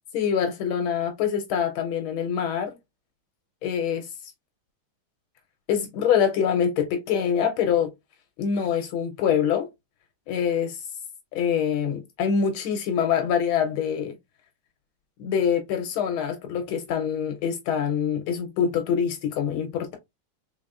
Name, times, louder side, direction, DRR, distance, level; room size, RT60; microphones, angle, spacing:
voice 1, 0.1-2.8 3.6-4.1 5.7-7.9 8.4-9.7 10.3-10.8 11.3-14.1 15.2-20.0, left 8 dB, 85° left, 1.5 m, -25 dB
3.9 x 3.6 x 2.3 m
omnidirectional pair, 2.3 m